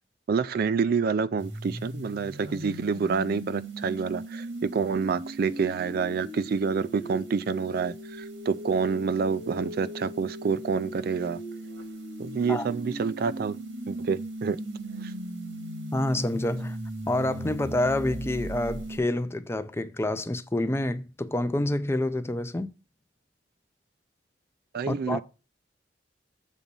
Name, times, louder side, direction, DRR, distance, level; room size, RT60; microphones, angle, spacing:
voice 1, 0.3-11.4 12.2-13.6 13.9-14.6 15.0-15.1 24.7-25.2, right 5 dB, 55° right, 0.3 m, -28 dB
sound 1, 1.4-19.0, right 1 dB, 90° right, 1.7 m, -38 dB
voice 2, 15.9-16.8 17.1-22.7 24.9-25.2, left 1 dB, 15° left, 0.4 m, -28 dB
7.4 x 4.1 x 5.3 m
head